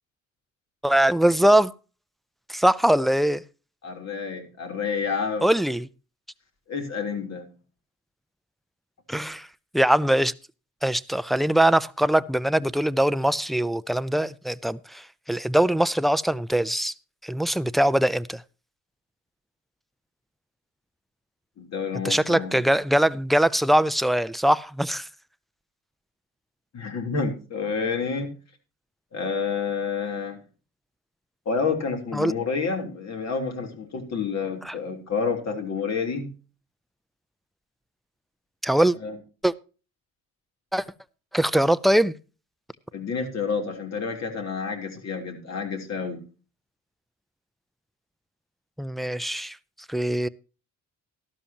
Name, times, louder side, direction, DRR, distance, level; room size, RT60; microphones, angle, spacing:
voice 1, 0.8-1.7 2.5-3.4 5.4-5.9 9.1-9.5 9.7-10.3 10.8-16.9 17.2-18.4 22.0-25.1 32.1-32.3 34.6-34.7 38.6-39.0 39.4-39.5 40.7-40.8 41.3-42.1 48.8-49.6 49.9-50.3, right 1 dB, ahead, 0.5 m, -22 dB
voice 2, 3.8-5.5 6.7-7.5 21.6-22.6 26.7-28.3 29.1-30.4 31.4-36.3 39.0-39.2 42.9-46.2, left 5 dB, 60° left, 3.4 m, -29 dB
13.0 x 12.5 x 2.9 m
cardioid pair, 90°, 30 cm